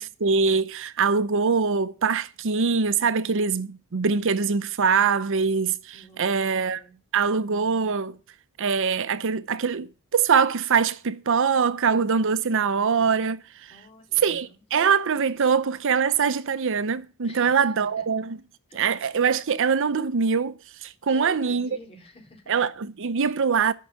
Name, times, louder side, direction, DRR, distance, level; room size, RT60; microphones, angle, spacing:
voice 1, 0.0-6.8 7.1-8.2 8.6-13.7 14.2-18.4 18.7-20.5 20.8-21.7 22.5-23.7, right 5 dB, 65° right, 0.7 m, -23 dB
voice 2, 5.9-7.0 13.7-14.6 15.4-15.5 17.2-18.0 18.7-18.9 21.0-22.5, left 1 dB, 30° left, 3.7 m, -49 dB
13.0 x 5.6 x 7.7 m
head